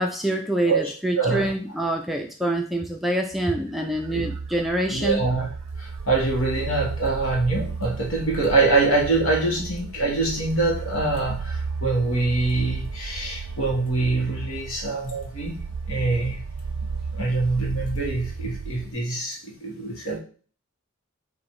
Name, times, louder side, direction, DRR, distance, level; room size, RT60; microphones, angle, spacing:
voice 1, 0.0-5.2, right 1 dB, ahead, 2 dB, 0.4 m, -26 dB
voice 2, 0.6-1.5 4.1-4.2 4.9-5.5 5.8-15.6 15.9-16.4 17.1-20.2, right 3 dB, 70° left, 0 dB, 1.5 m, -24 dB
sound 1, 3.3-18.9, right 4 dB, 80° right, 0.5 m, -34 dB
3.8 x 2.7 x 4.6 m, 0.40 s
head